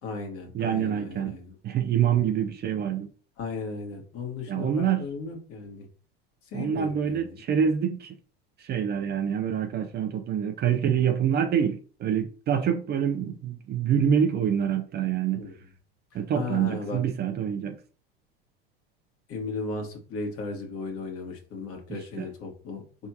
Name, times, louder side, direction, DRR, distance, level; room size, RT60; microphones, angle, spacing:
voice 1, 0.0-1.5 2.0-2.2 3.4-5.9 6.4-7.4 15.3-15.6 16.1-17.0 19.3-23.1, left 4 dB, 50° left, 1.6 m, -36 dB
voice 2, 0.5-1.3 1.6-3.1 4.5-5.1 6.5-8.1 8.6-15.4 16.1-17.8 22.2-22.3, right 8 dB, 35° right, 0.6 m, -26 dB
4.4 x 3.5 x 2.8 m
supercardioid pair, 100°, 31 cm